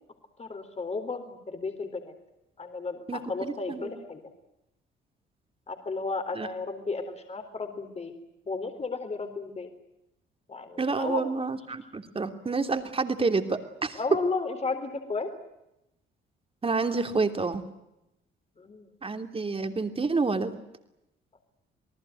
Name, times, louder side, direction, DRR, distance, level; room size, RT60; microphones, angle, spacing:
voice 1, 0.4-2.1 2.6-4.2 5.7-8.1 8.5-9.7 10.5-11.2 14.0-15.3 18.6-18.9, left 4 dB, 30° left, 7 dB, 4.0 m, -33 dB
voice 2, 3.1-3.9 6.3-6.5 10.8-14.0 16.6-17.6 19.0-20.6, right 4 dB, 30° right, 7 dB, 3.2 m, -29 dB
28.5 x 19.0 x 9.3 m, 0.88 s
cardioid pair, 90°, 20 cm